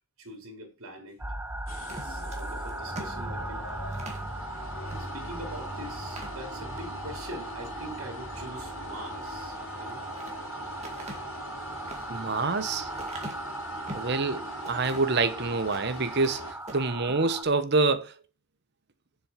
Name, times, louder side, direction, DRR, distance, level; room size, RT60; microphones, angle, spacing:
voice 1, 0.2-1.2 1.9-3.7 4.7-10.0, right 1 dB, 85° right, 3.5 m, -43 dB
sound 1, 1.2-17.4, right 2 dB, 10° right, 0.8 m, -38 dB
sound 2, 1.7-16.5, left 1 dB, 75° left, 2.7 m, -43 dB
sound 3, 1.8-4.3 4.9-5.0 5.4-5.5 6.0-6.9 7.4-7.8 9.6-10.4 10.8-14.2 14.6-15.2 15.6-16.4 16.6-16.9, right 1 dB, 30° right, 2.0 m, -44 dB
voice 2, 12.1-12.9 13.9-18.1, right 3 dB, 55° right, 1.1 m, -27 dB
7.5 x 6.8 x 5.8 m
head